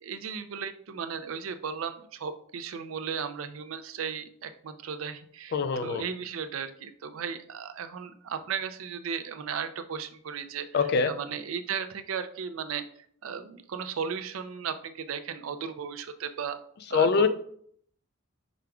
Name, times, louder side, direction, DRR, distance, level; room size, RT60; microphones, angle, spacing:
voice 1, 0.0-12.8 13.2-16.6 16.9-17.3, right 6 dB, 90° right, 10 dB, 0.4 m, -36 dB
voice 2, 5.5-6.0 10.7-11.1 16.9-17.3, left 5 dB, 55° left, 11 dB, 0.4 m, -23 dB
5.0 x 4.7 x 2.3 m, 0.63 s
head